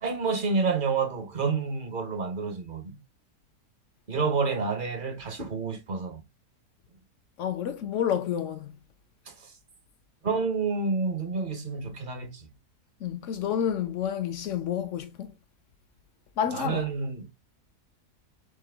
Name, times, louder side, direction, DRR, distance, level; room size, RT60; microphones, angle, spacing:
voice 1, 0.0-3.0 4.1-6.2 9.3-9.5 10.2-12.5 16.5-17.3, right 4 dB, 45° right, 0.7 m, -29 dB
voice 2, 7.4-8.7 13.0-15.3 16.4-16.8, left 9 dB, 70° left, 0.7 m, -29 dB
6.6 x 2.2 x 3.3 m
omnidirectional pair, 1.7 m